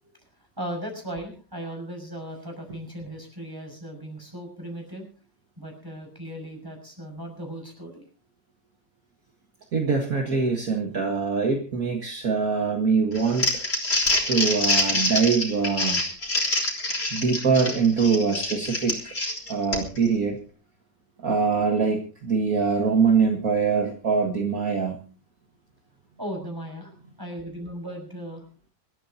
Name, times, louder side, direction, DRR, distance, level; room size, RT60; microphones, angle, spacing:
voice 1, 0.6-5.1 5.6-8.0 26.2-26.9 27.2-28.4, right 1 dB, 10° right, 4 dB, 6.1 m, -37 dB
voice 2, 9.7-13.6 14.3-16.0 17.1-19.1 19.5-20.4 21.2-25.0, right 5 dB, 50° right, 3 dB, 2.1 m, -23 dB
Crumpling crinkling, 13.2-20.1, left 2 dB, 45° left, 3.9 m, -26 dB
26.0 x 13.5 x 2.9 m, 0.35 s
omnidirectional pair, 1.9 m